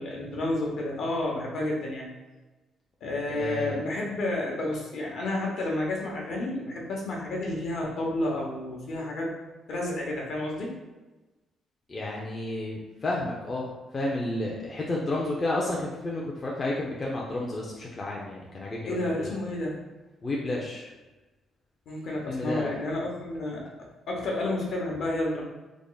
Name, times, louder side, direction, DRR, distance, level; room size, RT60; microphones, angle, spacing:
voice 1, 0.0-2.1 3.0-9.3 9.7-10.7 18.8-19.8 21.9-25.4, left 1 dB, 60° left, -2 dB, 0.9 m, -30 dB
voice 2, 3.3-3.8 11.9-19.3 20.2-20.9 22.3-22.7, left 2 dB, 30° left, -3 dB, 0.5 m, -31 dB
3.5 x 2.0 x 3.8 m, 1.1 s
cardioid pair, 135°, 0 cm